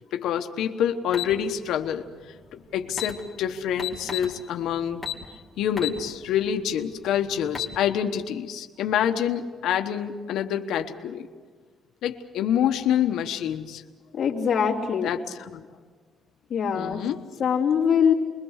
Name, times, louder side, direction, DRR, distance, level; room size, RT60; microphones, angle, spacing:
voice 1, 0.1-2.1 2.5-5.0 5.6-11.3 12.0-13.8 15.0-15.6 16.7-17.2, left 9 dB, 85° left, 6 dB, 1.2 m, -27 dB
sound 1, 1.1-1.3 2.5-2.6 2.9-3.1 3.8-4.3 5.0-5.2 5.8-6.0 6.4-6.5 7.3-7.7, left 8 dB, 10° left, 2.6 m, -30 dB
voice 2, 14.1-15.1 16.5-17.0 17.4-18.1, left 7 dB, 45° left, -3 dB, 3.0 m, -22 dB
28.5 x 22.0 x 6.5 m, 1.5 s
cardioid pair, 160°, 0 cm